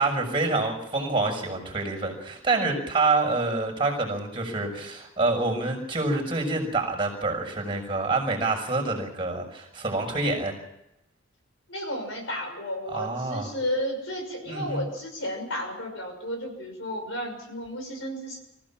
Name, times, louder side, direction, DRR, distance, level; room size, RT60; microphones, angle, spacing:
voice 1, 0.0-10.5 12.9-13.5 14.5-14.8, right 3 dB, 25° right, 3 dB, 6.1 m, -27 dB
voice 2, 11.7-18.4, equal, 65° left, 3 dB, 6.2 m, -33 dB
25.5 x 15.5 x 7.4 m, 0.86 s
head